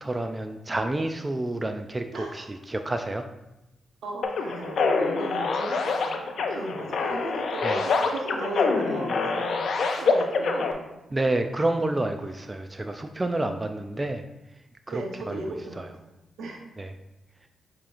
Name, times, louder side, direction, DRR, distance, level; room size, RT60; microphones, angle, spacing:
voice 1, 0.0-3.2 7.6-7.8 11.1-14.2 14.9-15.4 15.8-15.9 16.8-16.9, right 2 dB, 25° right, 6 dB, 0.4 m, -29 dB
voice 2, 2.1-2.4 4.0-9.7 10.0-10.8 14.9-16.0 16.4-16.6, right 2 dB, 80° right, 0 dB, 0.9 m, -36 dB
sound 1, 4.2-10.7, left 4 dB, 70° left, 0.5 m, -26 dB
6.8 x 3.0 x 2.5 m, 0.93 s
cardioid pair, 60°, 0 cm